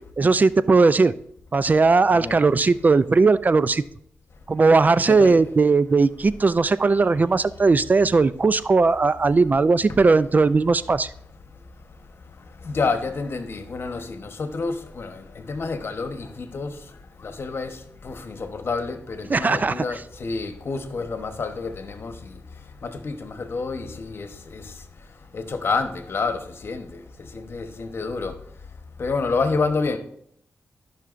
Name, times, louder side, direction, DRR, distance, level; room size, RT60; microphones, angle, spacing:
voice 1, 0.2-1.1 1.5-3.8 4.5-11.1 19.3-19.8, right 4 dB, 40° right, 0.3 m, -18 dB
voice 2, 2.1-2.4 4.9-5.4 12.6-16.7 17.2-22.4 22.8-24.7 25.3-27.0 27.3-28.3 29.0-30.0, left 4 dB, 60° left, 1.0 m, -29 dB
14.0 x 5.7 x 2.5 m
cardioid pair, 55°, 5 cm